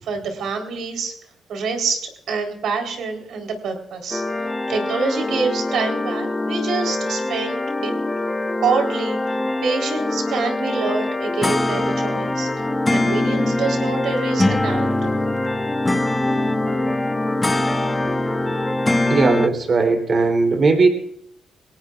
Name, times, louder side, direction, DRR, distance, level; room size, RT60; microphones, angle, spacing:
voice 1, 0.0-1.1 1.5-4.2 4.7-7.9 8.6-9.2 9.6-15.2, right 4 dB, 70° right, 4 dB, 4.0 m, -26 dB
sound 1, 4.1-19.5, left 2 dB, 15° left, 1.0 m, -23 dB
voice 2, 19.1-20.9, right 3 dB, 45° right, 5 dB, 3.5 m, -17 dB
24.5 x 18.0 x 2.5 m, 0.70 s
cardioid pair, 90°, 0 cm